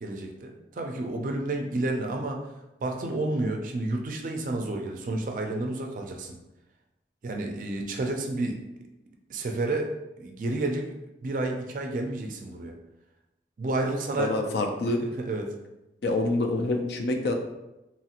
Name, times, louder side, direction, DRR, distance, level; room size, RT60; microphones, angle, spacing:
voice 1, 0.0-2.5 2.8-6.4 7.2-8.6 9.3-10.9 11.2-12.7 13.6-14.3 15.0-15.5, right 2 dB, 45° right, 2 dB, 0.4 m, -30 dB
voice 2, 14.2-15.0 16.0-17.3, left 2 dB, 70° left, 4 dB, 0.4 m, -26 dB
2.9 x 2.4 x 2.8 m, 0.96 s
head